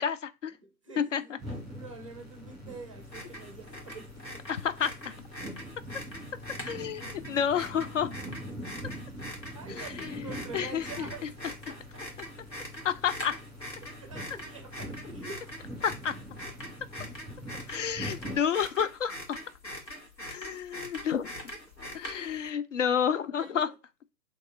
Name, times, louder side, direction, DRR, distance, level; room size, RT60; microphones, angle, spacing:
voice 1, 0.0-0.6 1.0-1.4 4.5-5.1 6.6-8.1 9.7-11.1 12.8-13.4 15.8-16.2 17.7-19.4 20.3-21.5 21.9-23.7, left 8 dB, 50° left, 0.5 m, -30 dB
voice 2, 0.6-4.5 9.5-12.1 13.8-15.5 23.3-23.7, right 4 dB, 20° right, 0.5 m, -46 dB
sound 1, 1.4-18.4, equal, ahead, 2.4 m, -43 dB
sound 2, 3.0-22.5, equal, 90° left, 1.8 m, -43 dB
6.3 x 3.0 x 2.2 m
figure-of-eight pair, 130°, 49 cm